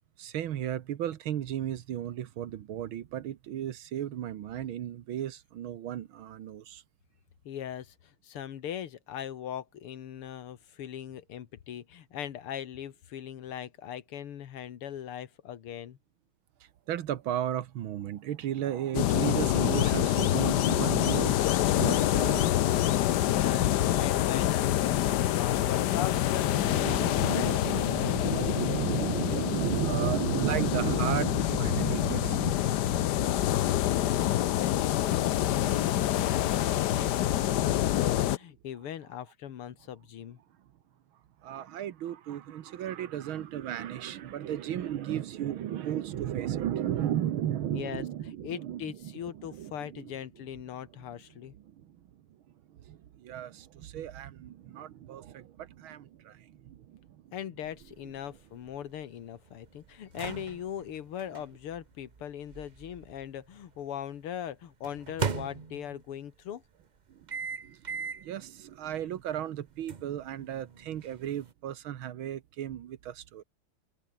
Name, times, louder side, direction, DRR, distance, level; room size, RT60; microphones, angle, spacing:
voice 1, 0.2-6.8 16.9-22.8 25.2-25.4 26.5-33.6 41.4-50.1 51.7-52.0 52.7-57.1 67.1-67.3 67.6-73.4, right 11 dB, 70° right, 1.8 m, -34 dB
voice 2, 7.4-16.0 23.2-28.8 33.9-40.4 47.7-51.6 57.3-66.6, left 10 dB, 85° left, 2.3 m, -40 dB
sound 1, 18.9-38.4, left 13 dB, 65° left, 1.1 m, -26 dB
sound 2, 57.6-63.8 64.8-66.2 67.3-68.3 68.8-69.0 69.9-71.5, right 5 dB, 50° right, 0.5 m, -39 dB
omnidirectional pair, 2.4 m